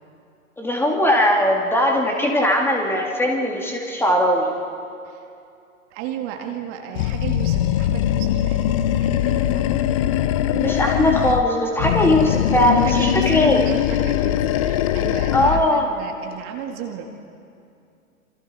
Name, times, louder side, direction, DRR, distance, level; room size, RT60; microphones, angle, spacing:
voice 1, 0.6-4.5 10.5-13.6 15.3-15.9, left 1 dB, 5° left, 0 dB, 2.2 m, -19 dB
voice 2, 5.9-9.8 12.7-13.4 13.6-17.1, right 9 dB, 30° right, 3 dB, 1.9 m, -34 dB
Animal, 6.9-11.5 11.8-15.7, left 12 dB, 25° left, 0.5 m, -21 dB
27.0 x 26.5 x 4.2 m, 2.5 s
figure-of-eight pair, 115°, 42 cm